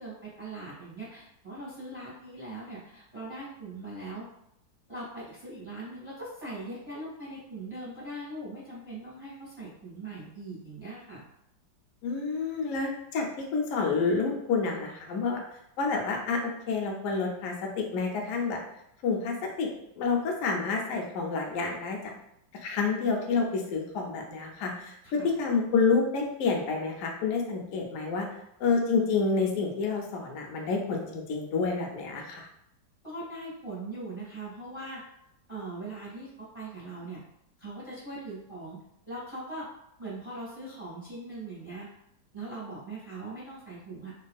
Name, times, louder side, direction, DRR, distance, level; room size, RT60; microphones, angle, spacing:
voice 1, 0.0-4.3 4.9-11.2 25.2-25.3 33.0-35.0 35.5-37.2 37.6-38.8 39.1-39.7 40.0-41.9 42.3-44.1, right 2 dB, 15° left, -9 dB, 1.2 m, -40 dB
voice 2, 12.0-15.4 15.8-18.6 19.0-19.7 20.0-22.1 22.5-28.3 28.6-32.5, left 4 dB, 75° left, 0 dB, 0.7 m, -29 dB
3.4 x 2.3 x 2.3 m, 0.79 s
omnidirectional pair, 2.0 m